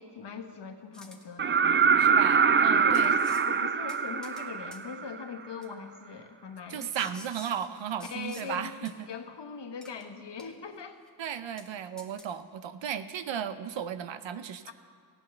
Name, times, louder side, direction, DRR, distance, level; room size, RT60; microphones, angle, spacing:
voice 1, 0.0-1.7 2.7-7.1 8.0-11.0 14.7-14.8, left 5 dB, 70° left, 6 dB, 1.3 m, -41 dB
sound 1, 0.9-1.2 2.3-2.4 2.9-3.5 3.9-4.5 4.7-4.8 5.6-5.7 6.8-8.5 8.8-8.9 9.8-10.0 10.4-10.8 11.1-11.2 11.6-11.7 12.0-12.3, left 1 dB, ahead, 1.5 m, -50 dB
sound 2, 1.4-5.2 7.1-7.2, right 6 dB, 30° right, 0.4 m, -23 dB
voice 2, 2.0-3.1 6.7-9.1 11.2-14.7, right 8 dB, 85° right, 12 dB, 0.8 m, -35 dB
15.5 x 8.6 x 6.9 m, 2.1 s
cardioid pair, 55°, 44 cm